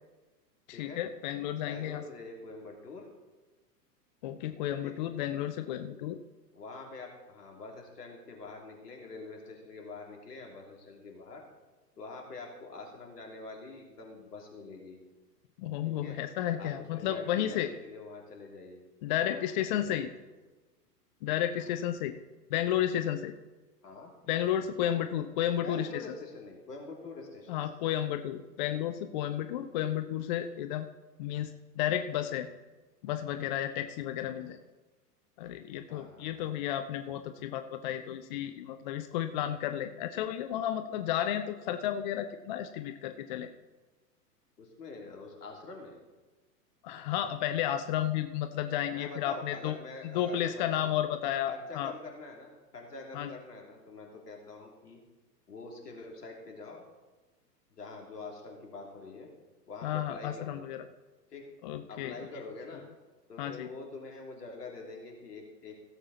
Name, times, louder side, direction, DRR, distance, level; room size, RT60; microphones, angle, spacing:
voice 1, 0.7-2.0 4.2-6.2 15.6-17.7 19.0-20.1 21.2-22.2 22.5-23.3 24.3-26.0 27.5-30.9 31.2-32.5 33.0-34.6 35.4-43.5 46.8-49.8 50.0-51.9 53.1-53.3 59.8-60.8 61.6-62.2 63.4-63.7, left 11 dB, 30° left, 9 dB, 0.5 m, -32 dB
voice 2, 1.6-3.1 4.8-4.9 6.5-11.4 12.0-15.0 15.8-16.2 16.6-18.8 19.2-20.1 21.6-21.7 23.8-24.1 24.8-25.1 25.6-27.6 34.3-34.4 35.9-36.4 44.6-46.0 48.9-50.9 51.5-55.0 55.5-56.8 57.7-59.3 59.7-60.6 61.3-61.5 61.9-62.8 63.3-65.8, left 3 dB, 70° left, 1 dB, 3.1 m, -45 dB
16.0 x 7.3 x 4.1 m, 1.2 s
figure-of-eight pair, 105°, 49 cm